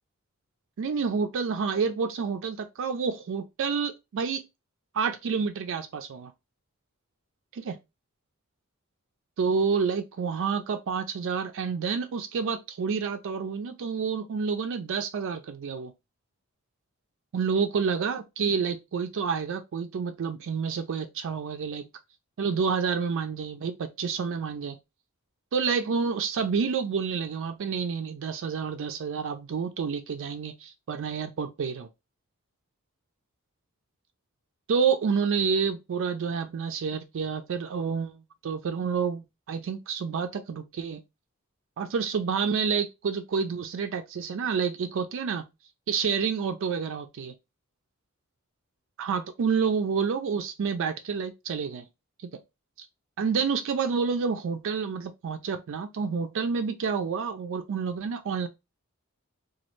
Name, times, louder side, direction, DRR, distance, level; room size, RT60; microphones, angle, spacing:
voice 1, 0.8-4.4 4.9-6.3 7.5-7.8 9.4-15.9 17.3-21.8 22.4-24.8 25.5-31.9 34.7-41.0 41.8-45.5 45.9-47.3 49.0-51.9 53.2-58.5, right 5 dB, 60° right, 0.4 m, -29 dB
3.0 x 2.3 x 3.1 m
head